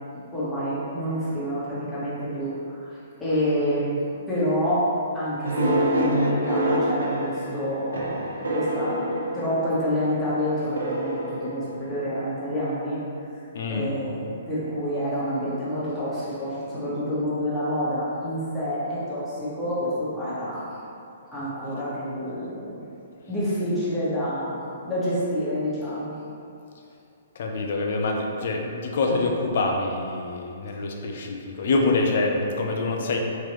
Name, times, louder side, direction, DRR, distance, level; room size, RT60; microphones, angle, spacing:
voice 1, 0.3-3.8 4.3-4.9 5.1-13.0 13.7-20.7 21.3-22.8 23.3-26.1, equal, 5° left, -12 dB, 1.3 m, -28 dB
sound 1, 5.4-10.0 10.8-12.3, right 1 dB, 90° right, 0.6 m, -26 dB
voice 2, 13.5-13.9 27.4-33.2, left 3 dB, 60° left, 2 dB, 0.5 m, -25 dB
3.5 x 3.2 x 3.0 m, 2.6 s
hypercardioid pair, 140°, 0 cm